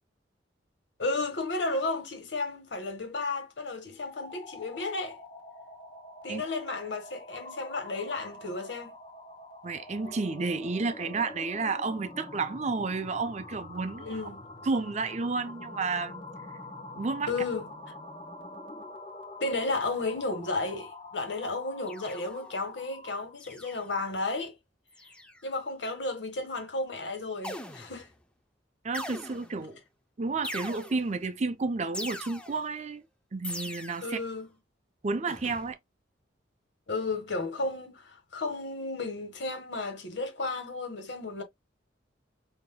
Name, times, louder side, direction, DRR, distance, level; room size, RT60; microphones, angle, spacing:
voice 1, 1.0-5.2 6.2-8.9 14.0-14.5 17.3-17.7 19.4-24.5 25.4-28.1 34.0-34.5 36.9-41.4, left 3 dB, 70° left, 1.4 m, -33 dB
sound 1, 3.9-23.3, left 2 dB, 25° left, 0.9 m, -45 dB
voice 2, 9.6-14.1 14.7-16.2 16.9-17.3 28.8-29.8 30.2-33.0 33.3-34.2 35.0-35.8, right 3 dB, 35° right, 0.5 m, -31 dB
sound 2, 21.9-22.6 23.4-24.0 24.9-25.5 27.4-28.1 28.9-29.7 30.4-31.2 31.9-32.7 33.4-34.2 35.3-35.7, left 1 dB, 5° left, 0.6 m, -41 dB
5.8 x 2.8 x 2.2 m
head